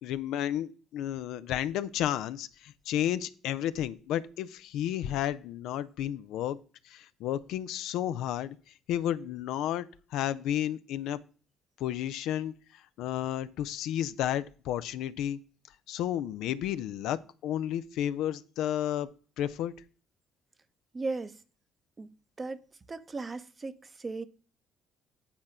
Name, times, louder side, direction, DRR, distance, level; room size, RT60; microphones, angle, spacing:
voice 1, 0.0-6.6 6.8-8.6 8.9-9.9 10.1-11.2 11.8-12.5 13.0-15.4 15.9-19.1 19.4-19.7, left 11 dB, 65° left, 0.4 m, -32 dB
voice 2, 20.9-21.4 22.0-22.1 22.4-22.6 22.9-24.2, right 3 dB, 30° right, 0.8 m, -36 dB
8.7 x 4.2 x 6.0 m
figure-of-eight pair, 45°, 0 cm